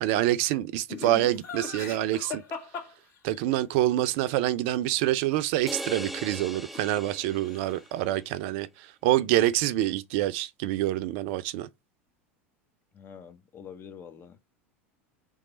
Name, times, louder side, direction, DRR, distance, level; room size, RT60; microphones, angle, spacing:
voice 1, 0.0-2.4 3.2-11.7, right 14 dB, 60° right, 0.5 m, -26 dB
Laughter, 0.9-3.6 6.4-7.2 7.4-8.0, left 6 dB, 45° left, 1.8 m, -39 dB
sound 1, 5.7-8.0, right 1 dB, ahead, 0.4 m, -39 dB
voice 2, 12.9-14.4, left 7 dB, 30° left, 0.8 m, -46 dB
3.5 x 3.2 x 4.0 m
hypercardioid pair, 85°, 7 cm